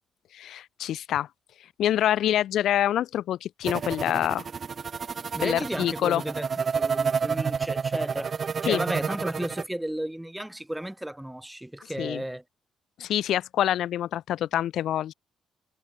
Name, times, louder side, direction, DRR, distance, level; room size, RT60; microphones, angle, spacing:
voice 1, 0.3-1.3 1.8-4.4 5.4-6.2 8.7-8.8 12.0-12.2 13.0-15.1, left 11 dB, 75° left, 0.4 m, -26 dB
sound 1, 3.7-9.6, right 6 dB, 45° right, 1.0 m, -29 dB
voice 2, 5.3-6.5 6.7-12.4, right 1 dB, 5° right, 3.4 m, -33 dB
cardioid pair, 90°, 0 cm